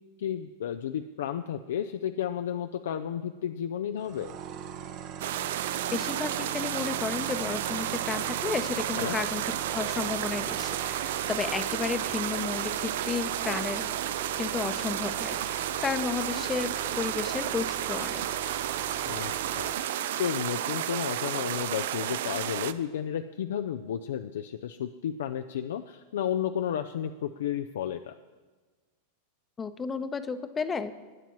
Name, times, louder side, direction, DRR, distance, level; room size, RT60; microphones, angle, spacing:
voice 1, 0.2-4.3 9.0-9.2 19.1-19.7 20.2-28.1, left 9 dB, 75° left, 7 dB, 0.4 m, -32 dB
sound 1, 4.0-19.7, right 8 dB, 50° right, 0.9 m, -40 dB
sound 2, 5.2-22.7, right 11 dB, 70° right, 0.4 m, -32 dB
voice 2, 5.9-9.4 9.7-13.9 14.4-16.7 17.0-18.2 29.6-31.1, left 5 dB, 20° left, 11 dB, 0.7 m, -33 dB
18.5 x 9.0 x 3.1 m, 1.4 s
hypercardioid pair, 105°, 0 cm